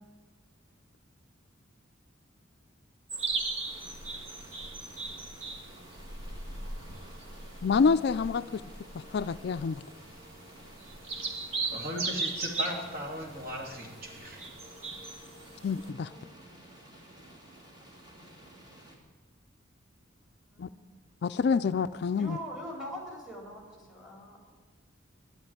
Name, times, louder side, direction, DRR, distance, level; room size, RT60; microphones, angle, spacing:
sound 1, 3.1-15.9, right 3 dB, 85° right, 1.6 m, -38 dB
sound 2, 3.6-19.0, right 1 dB, 20° right, 2.9 m, -53 dB
voice 1, 7.6-8.6 8.9-9.8 15.6-16.1 20.6-20.7 21.2-22.4, left 5 dB, 55° left, 13 dB, 0.3 m, -27 dB
voice 2, 11.7-14.5, equal, 50° right, 0 dB, 2.8 m, -37 dB
voice 3, 16.0-16.6 20.5-21.0 22.1-24.5, equal, 5° right, 0 dB, 3.8 m, -43 dB
11.0 x 11.0 x 9.2 m, 1.5 s
head